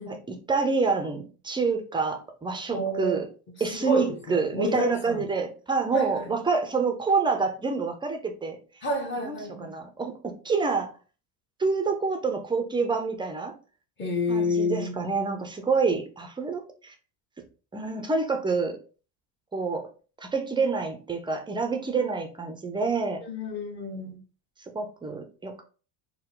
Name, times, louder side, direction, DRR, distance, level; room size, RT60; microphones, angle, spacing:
voice 1, 0.1-3.3 3.6-8.6 9.2-10.9 11.6-13.5 14.3-16.9 17.7-18.8 19.5-19.9 20.2-23.2 24.7-25.6, right 4 dB, 10° right, 0.4 m, -27 dB
voice 2, 2.7-3.2 3.8-5.2 5.9-6.3 8.8-9.7 14.0-15.0 23.2-24.2, left 1 dB, 25° left, 0.8 m, -29 dB
4.5 x 2.1 x 3.7 m
cardioid pair, 130°, 46 cm